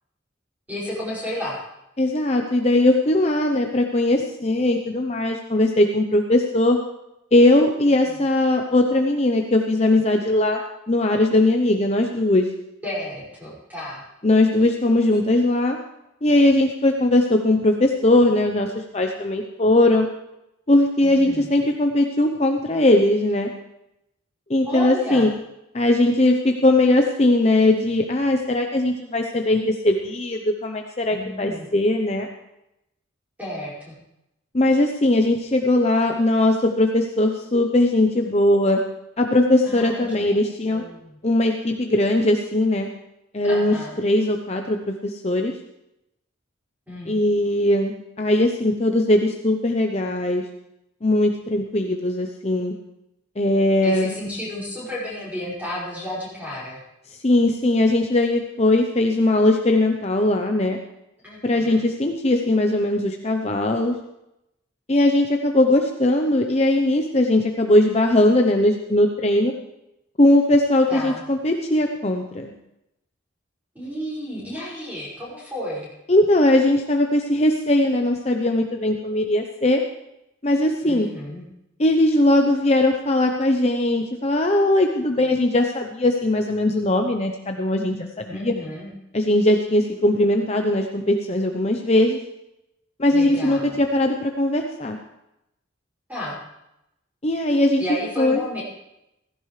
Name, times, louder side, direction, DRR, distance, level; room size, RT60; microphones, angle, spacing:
voice 1, 0.7-1.6 7.8-8.2 12.8-14.0 15.1-15.2 21.0-21.5 24.6-25.3 31.1-31.7 33.4-34.0 39.6-40.4 40.6-41.2 43.4-44.0 46.9-47.2 53.8-56.8 61.2-61.9 70.9-71.2 73.7-75.9 80.8-81.4 88.3-88.9 93.1-93.8 96.1-96.4 97.8-98.6, left 1 dB, 10° right, -7 dB, 5.8 m, -32 dB
voice 2, 2.0-6.8 7.3-10.6 10.9-12.5 14.2-15.8 16.2-20.1 20.7-23.5 24.5-25.3 25.7-32.3 34.5-38.8 39.2-40.8 41.2-42.9 43.3-45.5 47.1-50.4 51.0-52.7 53.4-54.1 57.1-60.8 61.4-63.9 64.9-69.5 70.2-72.5 76.1-79.8 80.4-81.1 81.8-88.5 89.1-92.2 93.0-95.0 97.2-98.4, left 1 dB, 30° left, 3 dB, 0.7 m, -19 dB
16.5 x 15.5 x 3.3 m, 0.88 s
head